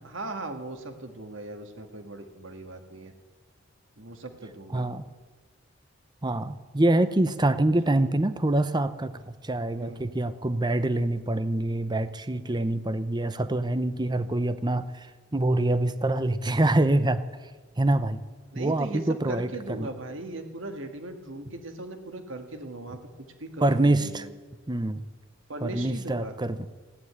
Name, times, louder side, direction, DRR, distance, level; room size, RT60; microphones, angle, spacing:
voice 1, 0.0-3.1 4.0-4.8 7.7-8.0 9.7-10.0 18.5-24.3 25.5-26.3, right 2 dB, 70° right, 6 dB, 1.8 m, -38 dB
voice 2, 4.7-5.1 6.2-15.1 15.3-17.2 17.8-18.2 18.5-19.9 23.6-24.3 24.7-25.0 25.6-26.7, right 1 dB, 20° right, 13 dB, 0.7 m, -25 dB
15.0 x 9.7 x 9.6 m, 1.3 s
head